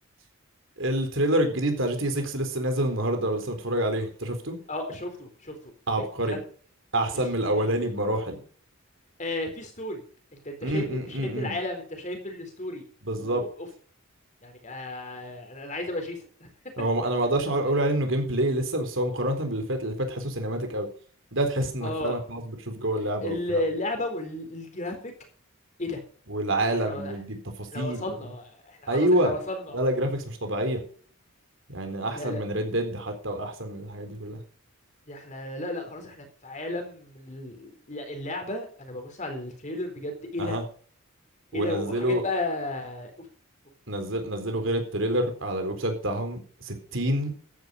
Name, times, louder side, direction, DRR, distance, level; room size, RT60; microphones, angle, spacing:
voice 1, 0.8-4.6 5.9-6.4 6.9-8.4 10.6-11.5 13.0-13.4 16.8-20.9 21.3-23.6 26.3-28.0 28.9-29.3 29.7-30.8 31.7-34.4 40.4-40.6 41.5-42.2 43.9-47.3, right 1 dB, 65° right, 5 dB, 4.0 m, -27 dB
voice 2, 4.7-5.7 6.0-6.4 7.1-7.7 9.2-10.0 10.3-12.8 13.1-13.7 14.4-16.5 21.8-22.2 23.0-25.1 25.8-26.0 26.7-27.1 27.7-29.8 32.1-32.4 35.1-40.6 41.5-43.3, left 1 dB, 35° left, 5 dB, 4.0 m, -34 dB
14.5 x 10.5 x 5.3 m, 0.43 s
head